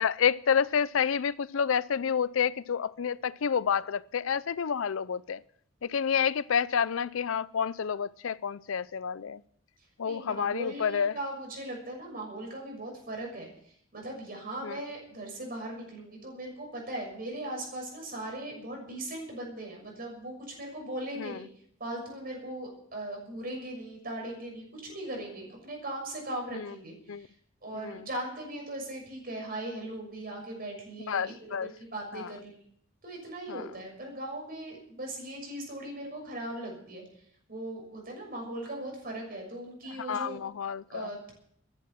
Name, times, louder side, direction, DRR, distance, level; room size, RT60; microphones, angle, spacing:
voice 1, 0.0-5.4 5.8-9.4 10.0-11.1 14.6-14.8 21.2-21.4 26.5-26.7 27.1-27.3 27.8-28.0 31.1-31.7 32.1-32.3 33.5-33.6 40.1-41.1, left 7 dB, 75° left, 0.5 m, -29 dB
voice 2, 10.0-13.5 13.9-21.5 21.8-27.3 27.6-32.5 33.0-37.0 37.5-40.4 40.9-41.3, right 1 dB, 45° right, 6.5 m, -39 dB
14.5 x 10.5 x 7.2 m
head